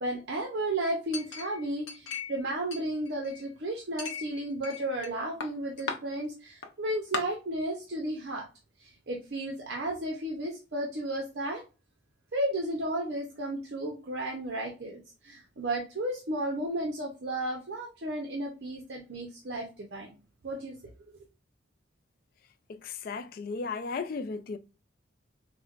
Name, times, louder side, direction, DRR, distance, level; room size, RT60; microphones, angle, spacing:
voice 1, 0.0-8.4 8.8-11.6 12.3-20.1 20.4-20.7, right 1 dB, 55° right, 0.6 m, -33 dB
Chink clink, 1.1-2.4 2.7-3.5 4.0-5.1 5.4-6.0 6.6-6.7 7.1-7.2, left 5 dB, 75° left, 0.7 m, -37 dB
voice 2, 22.7-24.6, left 4 dB, 45° left, 0.3 m, -35 dB
4.3 x 2.1 x 2.4 m
head